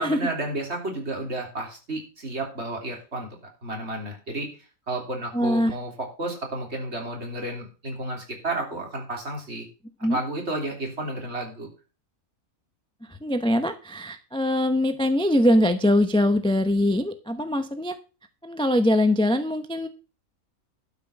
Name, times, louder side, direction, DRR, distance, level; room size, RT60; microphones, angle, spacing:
voice 1, 0.0-4.5 4.9-9.7 10.1-11.7, right 2 dB, 50° right, 1 dB, 3.8 m, -32 dB
voice 2, 5.3-5.7 10.0-10.2 13.2-17.9 18.4-19.9, left 1 dB, 5° left, 9 dB, 0.7 m, -22 dB
12.0 x 6.1 x 5.9 m, 0.33 s
omnidirectional pair, 1.4 m